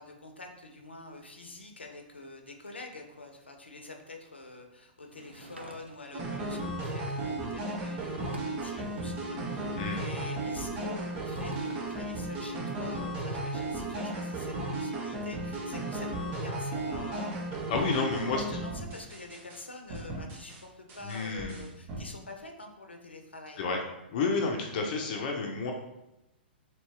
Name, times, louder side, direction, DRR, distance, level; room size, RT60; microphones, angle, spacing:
voice 1, 0.0-17.3 17.8-23.6, left 2 dB, 90° left, 4 dB, 0.7 m, -46 dB
Sliding door / Wood, 5.0-6.3 7.8-7.9 8.1-9.2 11.0-12.0, right 1 dB, 90° right, 0.5 m, -50 dB
sound 1, 6.1-19.6 19.9-20.6 20.9-22.0, right 1 dB, 30° right, 1.0 m, -35 dB
voice 2, 17.7-18.6 21.0-21.7 23.6-23.8 24.1-25.7, left 4 dB, 50° left, 2 dB, 0.7 m, -30 dB
4.1 x 2.9 x 3.4 m, 0.95 s
figure-of-eight pair, 110°, 6 cm